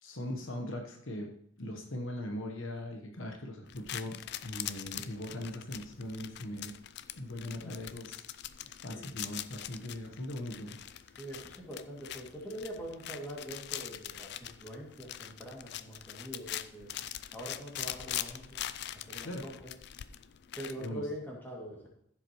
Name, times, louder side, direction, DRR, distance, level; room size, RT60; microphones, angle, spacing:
voice 1, 0.0-1.3 1.6-4.2 4.4-6.7 7.2-8.2 8.6-10.8 19.2-19.4 20.8-21.1, left 1 dB, 65° left, 2 dB, 1.1 m, -40 dB
sound 1, 3.7-20.9, left 12 dB, 50° left, 0.4 m, -43 dB
voice 2, 8.8-9.1 11.1-16.9 17.3-18.6 18.9-19.5 20.5-21.9, equal, 10° left, -3 dB, 2.4 m, -43 dB
14.5 x 7.5 x 3.1 m, 0.70 s
head